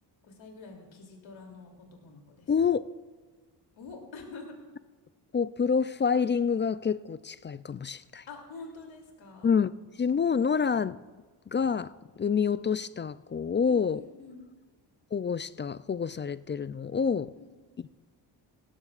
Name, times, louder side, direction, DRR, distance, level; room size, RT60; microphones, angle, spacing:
voice 1, 0.2-1.7 2.0-2.5 3.8-4.6 8.3-9.5 13.6-14.4 17.4-17.5, left 3 dB, 70° left, 1 dB, 3.1 m, -46 dB
voice 2, 2.5-2.8 5.3-8.2 9.4-9.7 10.0-11.0 11.5-11.9 12.2-14.0 15.1-17.3, left 6 dB, 25° left, 16 dB, 0.3 m, -27 dB
17.5 x 13.5 x 2.5 m, 1.4 s
cardioid pair, 60°, 48 cm